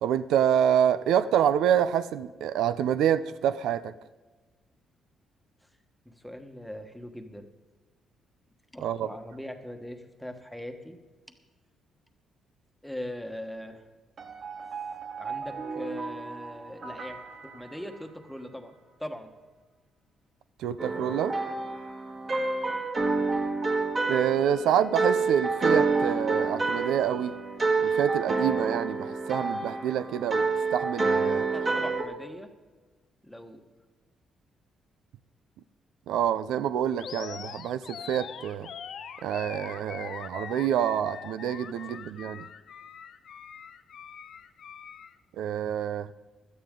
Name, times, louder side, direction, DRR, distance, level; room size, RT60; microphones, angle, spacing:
voice 1, 0.0-3.9 8.8-9.1 20.6-21.3 24.1-27.4 27.8-31.5 36.1-38.7 39.2-42.4 45.4-46.1, right 9 dB, 85° right, 13 dB, 0.5 m, -27 dB
voice 2, 6.0-7.5 8.7-11.0 12.8-13.8 15.2-17.2 17.4-18.7 19.0-19.3 31.5-32.5 33.2-33.6 41.9-42.0, left 1 dB, ahead, 5 dB, 1.3 m, -40 dB
sound 1, 14.2-18.5, right 5 dB, 50° right, 1.3 m, -39 dB
sound 2, 20.8-32.0, right 3 dB, 30° right, 1.8 m, -28 dB
Animal, 37.0-45.1, left 8 dB, 60° left, 0.7 m, -42 dB
16.5 x 13.0 x 3.8 m, 1.3 s
cardioid pair, 115°, 0 cm